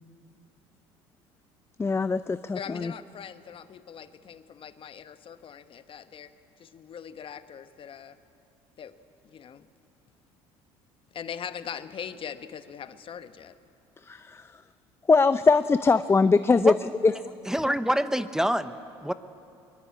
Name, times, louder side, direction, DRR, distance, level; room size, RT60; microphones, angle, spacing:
voice 1, 1.8-2.9 14.0-14.6 15.1-16.7 17.0-17.1, left 4 dB, 20° left, 13 dB, 0.5 m, -22 dB
voice 2, 2.5-6.3 6.6-8.2 8.8-9.0 9.2-9.7 11.1-13.6, left 8 dB, 45° left, 11 dB, 1.1 m, -41 dB
voice 3, 17.5-18.7 19.0-19.1, equal, 5° right, 12 dB, 0.9 m, -25 dB
22.5 x 22.0 x 8.6 m, 2.6 s
supercardioid pair, 80°, 13 cm